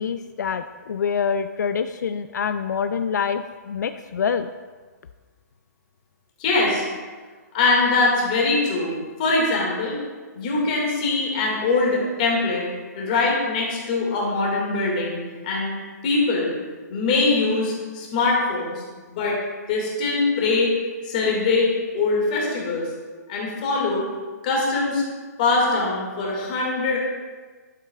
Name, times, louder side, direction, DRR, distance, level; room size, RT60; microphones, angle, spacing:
voice 1, 0.0-4.5, left 6 dB, 80° left, 9 dB, 0.4 m, -26 dB
voice 2, 6.4-6.8 7.5-10.0 10.3-12.6 13.0-15.2 15.4-15.7 16.0-16.5 16.9-19.4 19.7-20.7 21.0-22.9 23.3-24.0 24.4-25.0 25.4-27.0, left 3 dB, 25° left, -2 dB, 1.8 m, -22 dB
11.5 x 7.3 x 2.3 m, 1.4 s
hypercardioid pair, 180°, 10 cm